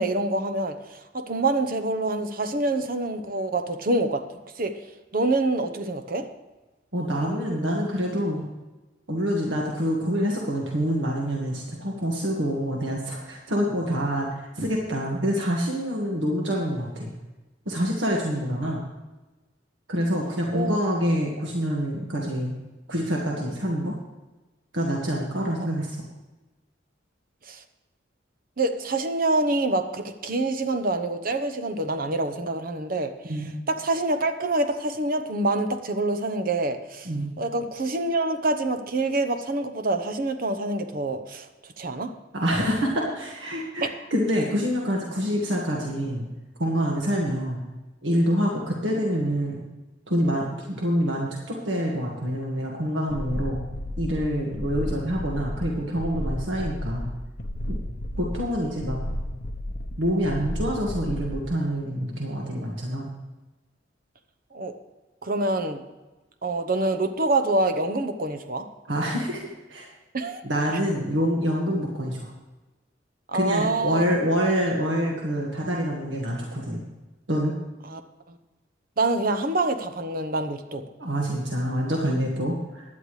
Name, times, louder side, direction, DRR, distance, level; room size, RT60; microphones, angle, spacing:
voice 1, 0.0-4.2 4.6-4.7 5.1-6.3 20.5-20.8 27.5-27.6 28.6-37.1 37.4-41.5 41.8-42.1 43.8-43.9 64.5-64.7 65.2-65.8 66.4-68.7 70.1-70.4 73.3-74.0 77.8-78.0 78.3-78.4 79.0-80.9, right 2 dB, 50° right, 8 dB, 0.9 m, -26 dB
voice 2, 6.9-8.5 9.1-17.1 17.7-18.8 19.9-22.5 22.9-23.9 24.7-26.0 33.2-33.5 37.1-37.3 42.3-46.3 46.6-47.6 48.0-49.6 50.1-53.6 54.0-57.1 57.7-57.8 58.2-59.0 60.0-63.1 68.9-69.4 69.7-69.9 70.4-72.3 73.3-76.8 77.3-77.5 81.0-82.8, equal, 75° right, -2 dB, 1.8 m, -26 dB
sound 1, 53.1-61.5, left 1 dB, 55° left, 0.9 m, -33 dB
16.5 x 11.0 x 3.3 m, 1.1 s
head